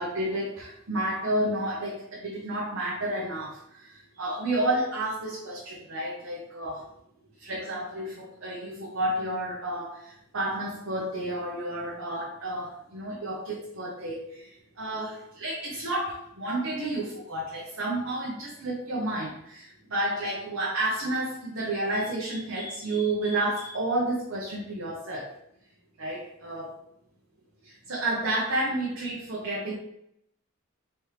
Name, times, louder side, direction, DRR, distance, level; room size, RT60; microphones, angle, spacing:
voice 1, 0.0-6.8 7.4-25.3 26.0-26.7 27.6-29.7, right 1 dB, 70° right, -5 dB, 1.0 m, -31 dB
4.3 x 3.3 x 3.1 m, 0.73 s
head